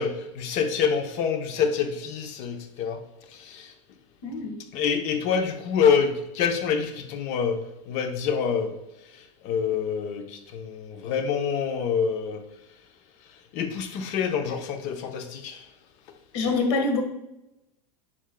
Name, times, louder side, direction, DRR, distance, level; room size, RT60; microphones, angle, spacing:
voice 1, 0.0-3.0 3.3-3.7 4.7-7.6 7.9-8.8 9.1-12.4 13.5-15.6, left 6 dB, 45° left, 7 dB, 0.8 m, -26 dB
voice 2, 4.2-4.6 16.3-17.0, left 3 dB, 60° left, 5 dB, 1.6 m, -25 dB
9.7 x 5.8 x 2.3 m, 0.91 s
supercardioid pair, 145°, 17 cm